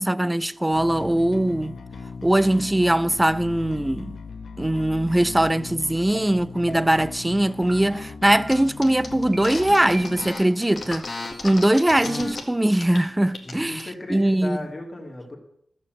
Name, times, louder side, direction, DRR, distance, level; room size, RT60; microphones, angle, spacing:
voice 1, 0.0-1.7 2.2-4.2 4.6-11.1 11.4-13.8 14.1-14.6, right 1 dB, 10° right, 0.4 m, -21 dB
Bass guitar, 0.7-10.3, left 5 dB, 80° left, 1.3 m, -38 dB
sound 1, 6.1-6.2 6.7-7.1 7.7-7.8 8.2-8.7 9.3-9.4 9.9-10.5, right 2 dB, 35° right, 1.8 m, -39 dB
sound 2, 8.5-8.6 8.8-12.4 12.8-13.0 13.3-13.8, left 3 dB, 35° left, 1.8 m, -34 dB
voice 2, 13.4-15.4, left 2 dB, 20° left, 2.7 m, -35 dB
13.5 x 7.2 x 7.9 m
wide cardioid pair, 175°, 0 cm